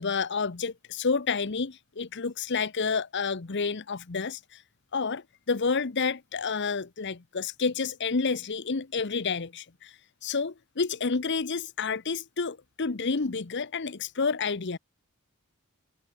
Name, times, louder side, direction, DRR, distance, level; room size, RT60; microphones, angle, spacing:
voice 1, 0.0-4.6 4.9-14.8, left 4 dB, 55° left, 0.9 m, -30 dB
head